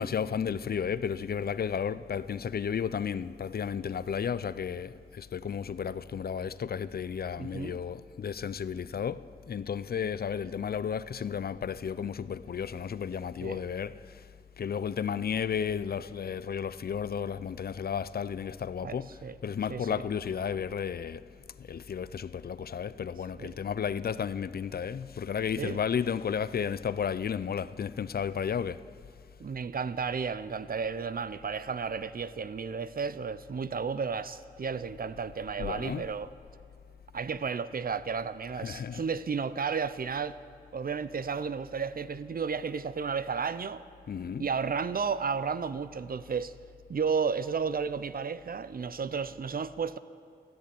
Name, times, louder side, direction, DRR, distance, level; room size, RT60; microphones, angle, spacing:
voice 1, 0.0-14.3 14.6-21.2 21.6-28.8 35.6-36.0 38.6-39.0 44.1-44.5, left 7 dB, 55° left, 0.4 m, -33 dB
voice 2, 7.4-7.8 13.4-13.6 18.8-19.4 19.7-20.0 23.4-23.6 25.6-25.8 29.4-36.3 37.1-40.4 40.7-43.8 44.4-46.5 46.9-50.0, right 5 dB, 50° right, 0.5 m, -33 dB
13.5 x 10.5 x 8.3 m
wide cardioid pair, 70°, 19 cm